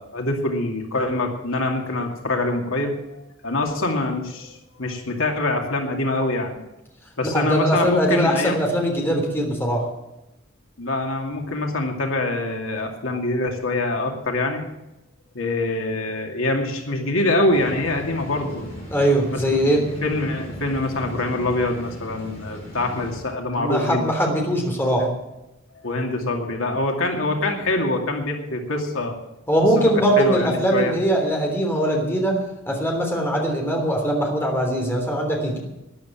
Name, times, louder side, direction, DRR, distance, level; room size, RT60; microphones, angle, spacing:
voice 1, 0.0-6.5 7.2-8.6 10.8-14.6 15.3-18.7 19.3-19.4 19.6-24.1 24.9-25.1 25.8-29.2 29.7-30.9, left 2 dB, 85° left, 2 dB, 2.5 m, -25 dB
voice 2, 7.2-9.8 18.9-19.8 23.6-25.1 29.5-32.4 32.7-35.6, right 1 dB, 10° left, 1 dB, 3.4 m, -21 dB
sound 1, 17.5-23.2, equal, 30° left, 6.3 m, -37 dB
13.0 x 11.0 x 7.4 m, 0.95 s
head